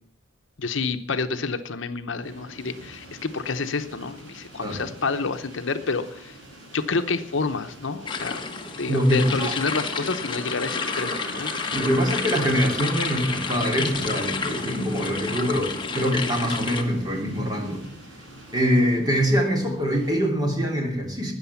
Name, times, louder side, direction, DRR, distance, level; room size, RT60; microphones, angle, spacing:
voice 1, 0.6-6.3 6.7-8.4 8.8-11.7, left 4 dB, 65° left, 9 dB, 0.8 m, -29 dB
sound 1, 2.2-20.1, right 1 dB, 70° right, 6.2 m, -46 dB
sound 2, 8.1-16.8, left 4 dB, 25° left, 1.3 m, -30 dB
voice 2, 8.9-9.6 11.7-17.9 18.5-21.3, equal, 20° right, 1 dB, 2.9 m, -24 dB
sound 3, 9.1-16.4, left 1 dB, 5° right, 5.9 m, -40 dB
13.0 x 9.2 x 7.0 m, 0.63 s
head